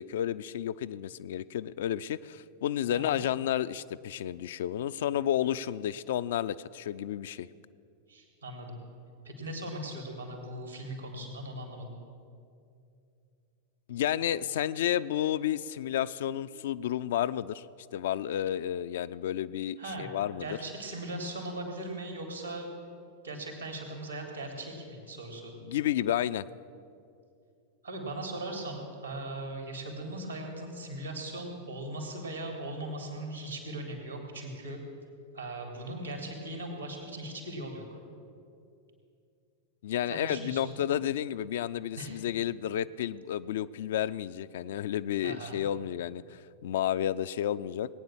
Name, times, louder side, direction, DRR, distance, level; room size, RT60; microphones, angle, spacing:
voice 1, 0.0-7.5 13.9-17.7 17.9-20.6 25.6-26.5 39.8-47.9, left 11 dB, 55° left, 14 dB, 0.4 m, -31 dB
voice 2, 8.1-8.8 9.2-11.9 19.8-20.1 20.4-22.7 23.2-25.5 27.8-34.8 35.3-38.0 40.1-40.7 42.0-42.1 45.2-45.6, right 1 dB, 85° right, 2 dB, 3.1 m, -39 dB
19.5 x 9.3 x 7.2 m, 2.5 s
figure-of-eight pair, 90°, 0 cm